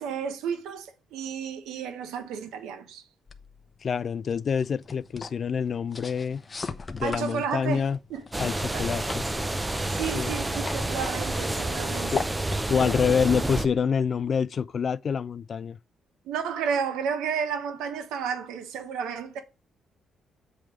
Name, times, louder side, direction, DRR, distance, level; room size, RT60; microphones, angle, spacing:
voice 1, 0.0-3.0 7.0-8.2 8.7-8.8 9.9-12.2 12.8-13.0 16.2-19.4, right 7 dB, 90° right, 1.0 m, -32 dB
sound 1, 3.3-14.4, left 4 dB, 30° left, 0.7 m, -41 dB
voice 2, 3.8-6.4 6.9-8.0 8.4-9.3 10.1-10.3 12.1-12.2 12.7-15.8, left 6 dB, 50° left, 0.4 m, -26 dB
sound 2, 8.3-13.7, right 2 dB, 15° right, 0.5 m, -29 dB
7.7 x 3.3 x 6.1 m
cardioid pair, 90°, 0 cm